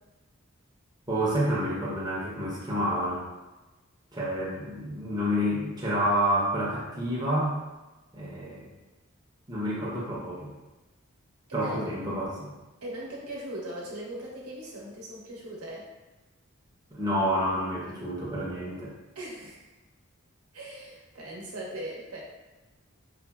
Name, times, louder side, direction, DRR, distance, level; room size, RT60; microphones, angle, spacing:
voice 1, 1.1-3.2 4.1-7.6 8.1-8.6 9.5-10.5 11.5-12.5 16.9-18.9, equal, 20° right, -6 dB, 0.6 m, -29 dB
voice 2, 11.5-11.9 12.8-15.9 19.1-19.6 20.5-22.2, right 1 dB, 85° right, -4 dB, 0.8 m, -39 dB
4.0 x 2.1 x 2.2 m, 1.1 s
head